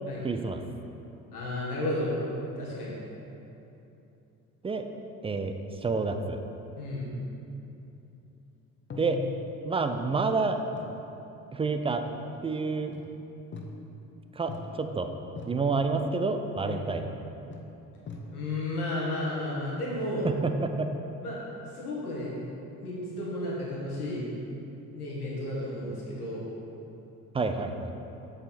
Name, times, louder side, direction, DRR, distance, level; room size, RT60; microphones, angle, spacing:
voice 1, 0.2-0.6 4.6-4.9 5.2-5.5 5.8-6.4 9.0-9.2 9.6-10.6 11.5-12.0 12.4-12.9 14.4-15.1 15.4-17.1 20.2-20.9 27.3-27.9, right 4 dB, 15° right, 7 dB, 0.4 m, -28 dB
voice 2, 1.3-2.1 2.5-2.9 6.8-7.2 16.6-16.8 18.3-20.3 21.2-21.4 21.7-22.4 22.8-24.3 24.9-26.4, left 1 dB, 80° left, -5 dB, 1.6 m, -33 dB
sound 1, 7.0-7.8 8.9-10.1 10.7-11.1 12.0-12.5 12.9-14.1 14.5-15.0 15.4-15.9 16.7-17.2 17.5-18.7, left 3 dB, 25° left, 1.0 m, -43 dB
7.4 x 7.3 x 4.2 m, 2.9 s
figure-of-eight pair, 55°, 44 cm